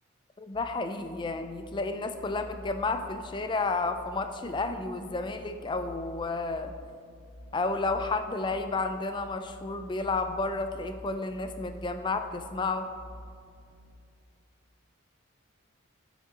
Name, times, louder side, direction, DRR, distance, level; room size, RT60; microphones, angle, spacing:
voice 1, 0.4-6.7 7.5-12.9, left 3 dB, 25° left, 8 dB, 0.3 m, -31 dB
sound 1, 0.5-13.9, equal, 55° left, 1.6 m, -49 dB
6.5 x 6.3 x 4.0 m, 2.3 s
head